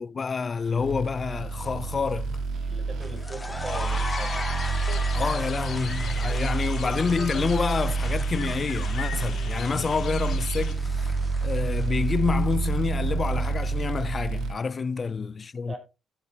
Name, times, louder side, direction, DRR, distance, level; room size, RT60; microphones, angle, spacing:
voice 1, 0.0-2.4 5.1-11.1 11.4-15.7, left 5 dB, 35° left, 0.5 m, -28 dB
sound 1, 0.7-14.5, right 4 dB, 75° right, 1.8 m, -28 dB
voice 2, 2.7-4.5 14.9-15.1 15.7-15.8, right 2 dB, 30° right, 6.2 m, -40 dB
sound 2, 3.0-12.3, left 2 dB, 15° left, 1.9 m, -38 dB
sound 3, 3.7-10.7, left 8 dB, 75° left, 2.5 m, -40 dB
16.5 x 8.8 x 2.8 m
cardioid pair, 90°, 0 cm